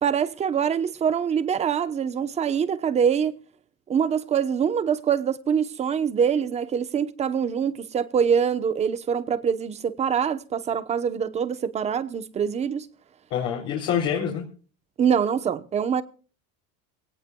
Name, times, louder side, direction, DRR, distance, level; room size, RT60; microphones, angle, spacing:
voice 1, 0.0-3.4 3.9-12.9 15.0-16.0, right 7 dB, 20° right, 1.0 m, -24 dB
voice 2, 13.3-14.4, left 8 dB, 50° left, 3.6 m, -26 dB
24.5 x 18.0 x 2.3 m
cardioid pair, 165°, 30 cm